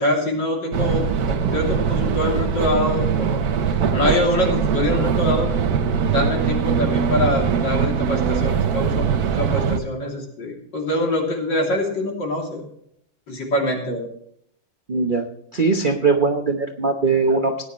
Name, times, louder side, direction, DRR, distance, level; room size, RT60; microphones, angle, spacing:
voice 1, 0.0-3.4 3.7-5.5 6.1-12.6 13.3-14.1, left 1 dB, 55° left, -1 dB, 3.7 m, -24 dB
sound 1, 0.7-9.8, right 6 dB, 55° right, 1.1 m, -21 dB
voice 2, 14.9-17.6, right 4 dB, 40° right, 4 dB, 0.7 m, -20 dB
17.5 x 10.0 x 3.2 m, 0.71 s
omnidirectional pair, 2.3 m